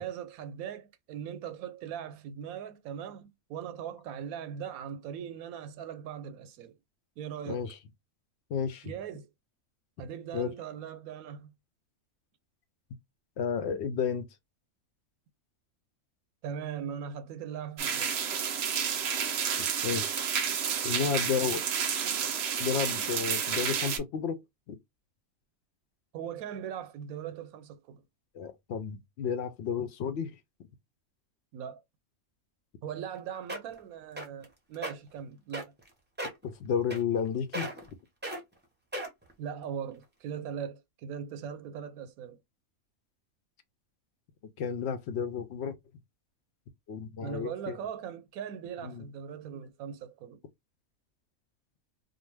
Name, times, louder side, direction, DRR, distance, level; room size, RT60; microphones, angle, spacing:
voice 1, 0.0-6.8 7.2-7.7 8.8-9.3 10.0-11.5 16.4-18.2 26.1-28.0 31.5-31.8 32.8-35.7 39.4-42.4 47.2-50.4, right 8 dB, 90° right, 1.0 m, -40 dB
voice 2, 7.5-7.8 8.5-8.9 10.3-10.5 13.4-14.3 19.8-20.3 20.8-21.6 22.6-24.8 28.3-30.4 36.4-37.7 44.6-45.8 46.9-47.8 48.8-49.1, left 7 dB, 65° left, 0.7 m, -32 dB
sound 1, 17.8-24.0, right 7 dB, 60° right, 0.7 m, -30 dB
sound 2, 33.1-33.2 33.5-33.8 34.2-34.4 34.7-34.9 35.5-35.9 36.2-36.4 36.9-37.3 37.5-37.9 38.2-38.4 38.9-39.3 39.9-40.0, right 1 dB, 10° right, 0.6 m, -36 dB
2.5 x 2.2 x 3.2 m
omnidirectional pair, 1.5 m